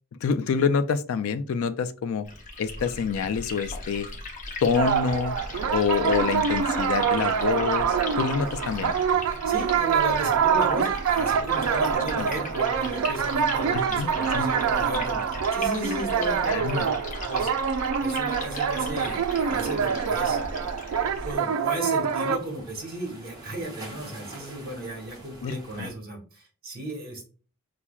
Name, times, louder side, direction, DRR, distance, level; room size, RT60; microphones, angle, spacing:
voice 1, 0.2-2.3 2.6-4.1 4.6-5.4 5.7-8.9 12.2-12.3 13.7-14.5 16.4-16.9 18.9-19.1 25.4-25.9, left 6 dB, 70° left, 12 dB, 0.3 m, -27 dB
Liquid, 2.2-21.3, left 2 dB, 35° left, 0.8 m, -37 dB
sound 1, 4.7-22.4, right 7 dB, 85° right, 0.4 m, -25 dB
voice 2, 9.5-16.9 17.3-17.5 18.0-20.4 21.2-27.3, right 1 dB, 45° right, 1 dB, 1.2 m, -35 dB
sound 2, 19.0-25.9, right 1 dB, 20° right, 1.0 m, -47 dB
5.7 x 2.0 x 2.3 m, 0.38 s
head